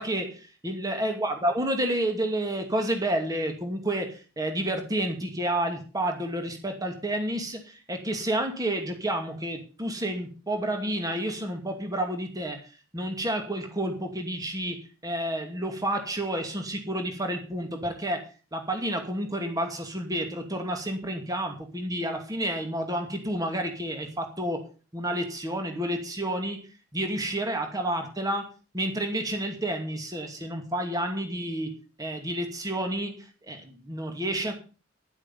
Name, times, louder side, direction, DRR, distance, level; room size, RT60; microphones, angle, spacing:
voice 1, 0.0-12.6 12.9-18.2 18.5-24.7 24.9-26.6 26.9-28.5 28.7-34.5, right 1 dB, 15° right, 5 dB, 2.5 m, -30 dB
12.0 x 11.0 x 5.6 m, 0.35 s
head